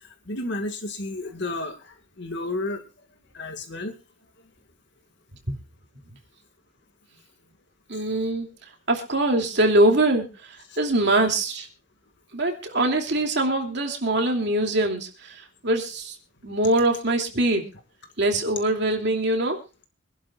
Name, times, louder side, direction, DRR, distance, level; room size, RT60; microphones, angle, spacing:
voice 1, 0.3-2.8 3.3-3.9, left 2 dB, 60° left, 6 dB, 2.1 m, -31 dB
voice 2, 7.9-8.5 8.9-11.7 12.3-16.2 16.4-17.7 18.2-19.6, right 1 dB, 55° right, 3 dB, 2.9 m, -23 dB
25.5 x 11.5 x 2.5 m, 0.28 s
head